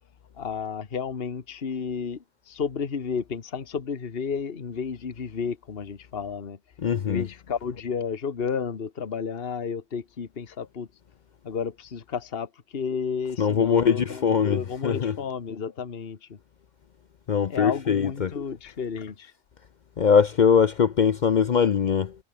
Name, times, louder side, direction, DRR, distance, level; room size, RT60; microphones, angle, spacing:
voice 1, 0.4-6.6 7.1-10.9 11.4-16.4 17.5-19.3, left 6 dB, 45° left, 1.6 m, -32 dB
voice 2, 6.8-7.3 13.4-15.2 17.3-18.3 20.0-22.2, left 7 dB, 60° left, 0.5 m, -22 dB
omnidirectional pair, 1.5 m